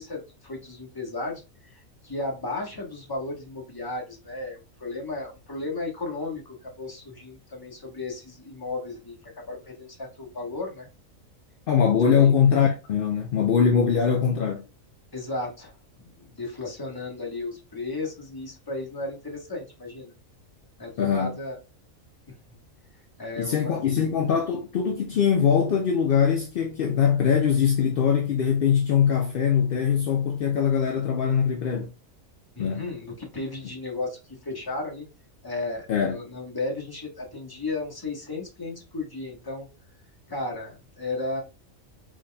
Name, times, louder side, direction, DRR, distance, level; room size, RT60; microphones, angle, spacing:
voice 1, 0.0-10.9 12.0-12.3 15.1-15.7 16.0-20.1 20.8-21.6 22.5-22.6 23.2-23.7 32.5-35.1 35.4-39.7 40.3-41.4, left 2 dB, 20° left, 1.0 m, -34 dB
voice 2, 11.7-14.6 21.0-21.3 23.4-31.9 32.6-32.8 35.9-36.2, left 7 dB, 60° left, 0.6 m, -22 dB
4.0 x 3.6 x 2.2 m
omnidirectional pair, 1.4 m